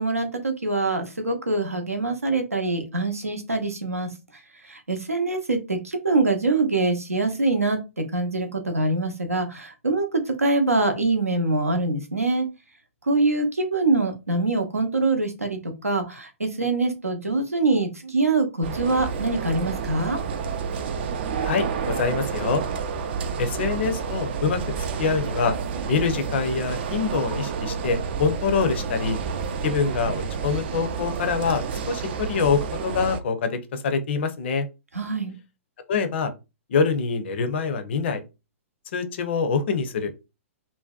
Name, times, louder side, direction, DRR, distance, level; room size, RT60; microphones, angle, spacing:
voice 1, 0.0-4.1 4.6-12.5 13.0-20.2 34.9-35.3, right 3 dB, 85° right, 0.6 m, -24 dB
sound 1, 18.6-33.2, right 6 dB, 45° right, 0.3 m, -30 dB
voice 2, 21.4-22.6 23.4-24.6 25.0-25.6 25.9-29.2 29.6-34.7 35.9-36.3 36.7-38.2 38.9-40.1, left 5 dB, 50° left, 0.5 m, -25 dB
2.6 x 2.1 x 2.3 m
figure-of-eight pair, 115°, 8 cm